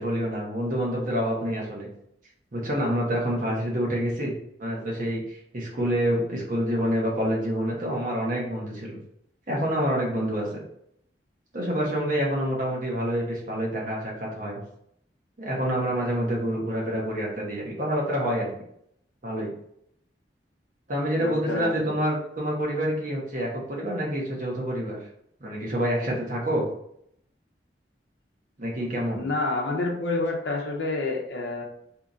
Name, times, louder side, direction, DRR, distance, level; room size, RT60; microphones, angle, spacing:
voice 1, 0.0-1.9 2.5-4.3 4.6-9.0 9.5-10.5 11.5-14.6 15.4-18.5 19.2-19.5 20.9-25.0 25.4-26.6 28.6-29.2, equal, 50° right, -3 dB, 0.9 m, -27 dB
voice 2, 21.2-21.9 29.1-31.6, left 2 dB, 80° left, 0 dB, 0.6 m, -28 dB
2.8 x 2.5 x 3.9 m, 0.72 s
head